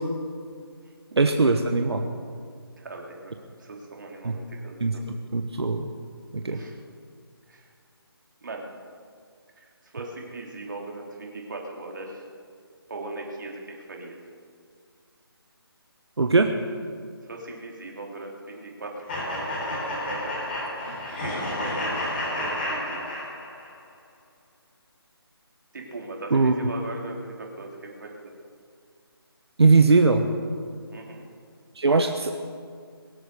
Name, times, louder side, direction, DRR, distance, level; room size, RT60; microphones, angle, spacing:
voice 1, 1.2-2.1 4.2-4.4 4.8-5.0 5.3-5.9 6.3-6.6 16.2-16.5 26.3-26.5 29.6-30.3 31.8-32.3, right 3 dB, 90° right, 5 dB, 1.2 m, -20 dB
voice 2, 2.8-3.3 3.6-5.0 6.5-6.7 7.5-7.6 8.4-8.7 9.9-12.2 12.9-14.2 17.3-18.9 20.1-20.4 21.2-22.0 22.3-23.0 25.7-28.3 30.9-31.2, right 2 dB, 50° right, 0 dB, 3.1 m, -38 dB
sound 1, 19.1-23.7, left 1 dB, 25° left, 4.4 m, -30 dB
23.0 x 7.9 x 6.7 m, 2.1 s
hypercardioid pair, 170°, 13 cm